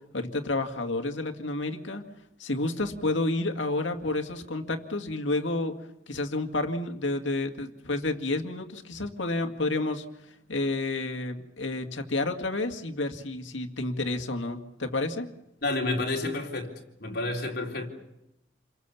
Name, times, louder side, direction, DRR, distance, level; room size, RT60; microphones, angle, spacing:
voice 1, 0.1-2.1 2.4-15.3, left 2 dB, 80° left, 2.1 m, -30 dB
voice 2, 15.6-17.9, left 2 dB, 55° left, 4.1 m, -30 dB
29.0 x 23.0 x 7.1 m
head